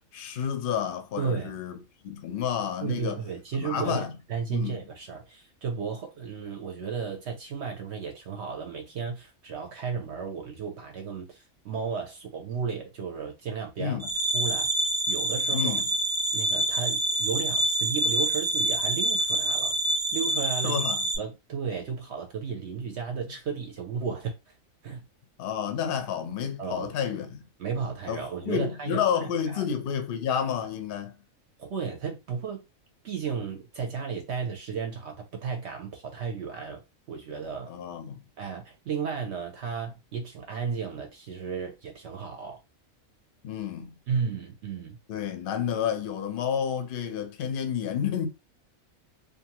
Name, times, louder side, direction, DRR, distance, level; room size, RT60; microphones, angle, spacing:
voice 1, 0.1-1.8 2.0-3.2 3.5-4.1 4.5-4.8 13.8-14.1 15.5-15.9 20.6-21.0 25.4-27.5 28.1-31.1 37.7-38.2 43.4-43.9 45.1-48.3, left 8 dB, 60° left, 0.6 m, -30 dB
voice 2, 1.2-1.5 2.8-14.0 14.3-14.7 15.1-15.8 16.3-20.8 21.2-24.3 24.8-25.0 26.6-26.9 27.6-29.0 29.5-29.6 31.6-32.6 33.0-36.8 37.1-37.7 38.4-42.6 44.1-45.0, right 6 dB, 65° right, 0.8 m, -34 dB
sound 1, 14.0-21.2, right 1 dB, 35° right, 0.3 m, -26 dB
2.6 x 2.5 x 2.8 m
omnidirectional pair, 1.4 m